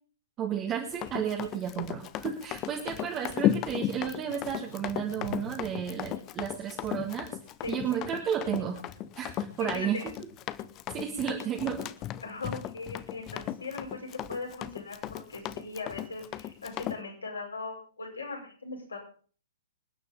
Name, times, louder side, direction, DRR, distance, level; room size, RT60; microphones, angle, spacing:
voice 1, 0.4-7.3 7.7-8.8 9.2-10.3 10.9-11.9, right 8 dB, 20° right, 0 dB, 1.8 m, -33 dB
Run, 0.9-17.0, left 12 dB, 25° left, 0.7 m, -35 dB
Thunder / Rain, 3.3-12.5 12.8-13.7 14.2-14.6 14.8-15.7 16.3-16.4, right 2 dB, 80° right, 3.2 m, -51 dB
voice 2, 9.6-10.1 12.2-14.0 14.3-19.0, left 3 dB, 70° left, 0 dB, 5.4 m, -39 dB
26.0 x 9.5 x 3.7 m, 0.42 s
figure-of-eight pair, 115°, 0 cm